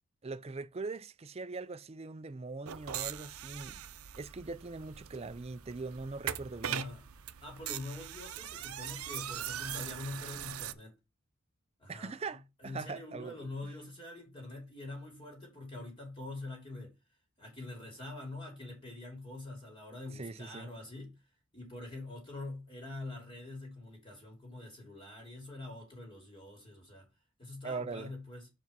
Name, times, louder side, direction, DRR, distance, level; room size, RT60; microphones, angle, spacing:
voice 1, 0.2-3.8 4.2-6.9 11.9-13.4 20.1-20.7 27.6-28.1, right 3 dB, 30° right, 0.4 m, -41 dB
sound 1, 2.6-10.7, right 10 dB, 90° right, 0.6 m, -41 dB
voice 2, 6.7-7.0 7.4-10.9 11.8-12.2 12.6-16.9 17.4-21.1 21.5-27.1 27.4-28.5, left 2 dB, 25° left, 2.8 m, -44 dB
5.4 x 5.1 x 5.3 m
head